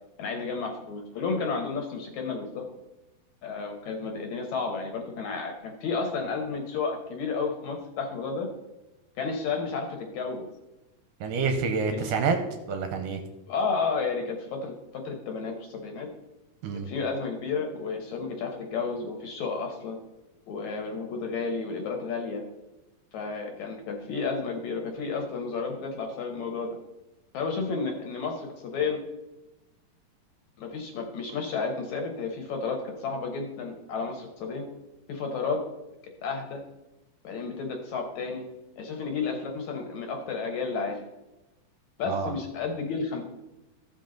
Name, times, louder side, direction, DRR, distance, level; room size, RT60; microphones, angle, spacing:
voice 1, 0.2-2.7 3.4-8.5 9.2-10.5 11.9-12.2 13.5-16.1 16.9-20.0 20.5-22.4 23.1-26.8 27.3-29.0 30.6-34.7 35.1-35.6 36.2-36.6 37.2-38.5 38.8-41.0 42.0-43.2, left 4 dB, 65° left, 3 dB, 2.1 m, -32 dB
voice 2, 11.2-12.4 12.7-13.2 16.6-16.9 42.1-42.3, right 5 dB, 75° right, 6 dB, 2.2 m, -27 dB
14.5 x 5.6 x 3.8 m, 1.0 s
omnidirectional pair, 4.2 m